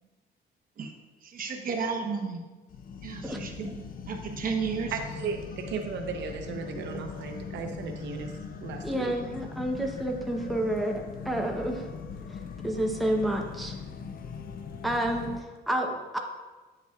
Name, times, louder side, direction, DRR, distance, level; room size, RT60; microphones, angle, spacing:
voice 1, 1.2-2.4 3.0-3.8 4.1-4.9, right 5 dB, 50° right, 3 dB, 1.0 m, -32 dB
sound 1, 2.7-15.4, left 5 dB, 55° left, 0.5 m, -40 dB
voice 2, 4.9-8.3 8.6-9.1, right 5 dB, 80° right, 5 dB, 0.7 m, -35 dB
voice 3, 8.8-11.9 12.3-13.8 14.8-16.2, right 1 dB, ahead, 1 dB, 0.7 m, -30 dB
8.5 x 6.9 x 2.4 m, 1.2 s
cardioid pair, 120°, 18 cm